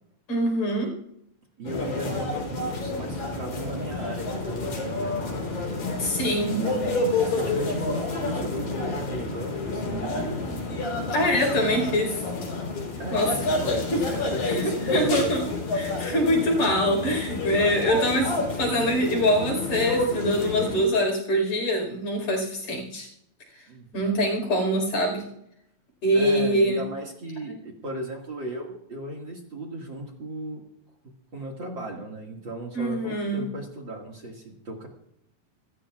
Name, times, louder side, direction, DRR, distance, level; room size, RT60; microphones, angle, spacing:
voice 1, 0.3-0.9 5.9-6.6 11.1-12.2 13.1-13.3 13.9-14.0 14.5-23.1 23.9-25.2 26.0-26.8 32.7-33.4, equal, 65° left, 2 dB, 5.9 m, -24 dB
voice 2, 1.6-5.3 5.7-5.8 6.3-10.4 11.5-11.9 13.0-15.3 23.7-24.1 26.1-30.6 31.3-34.9, right 1 dB, 40° right, 2 dB, 2.6 m, -36 dB
sound 1, 1.7-20.8, left 2 dB, 85° left, 5.2 m, -29 dB
27.5 x 13.5 x 2.5 m, 0.76 s
omnidirectional pair, 3.4 m